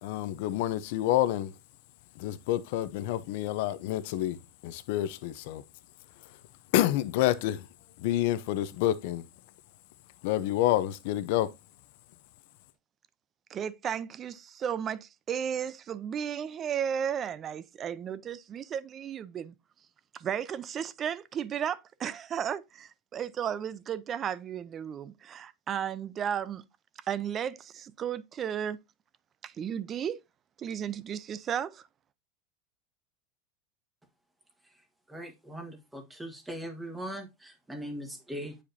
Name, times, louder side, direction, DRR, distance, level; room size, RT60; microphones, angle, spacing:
voice 1, 0.0-1.5 2.2-4.4 4.6-5.6 6.7-7.7 8.0-9.3 10.2-11.5, left 14 dB, 65° left, 0.6 m, -28 dB
voice 2, 13.5-19.5 20.1-26.6 27.1-28.8 29.4-30.2 30.6-31.8, right 8 dB, 30° right, 0.5 m, -34 dB
voice 3, 35.1-38.6, equal, 5° right, 1.5 m, -40 dB
8.6 x 5.0 x 2.7 m
supercardioid pair, 135°, 0 cm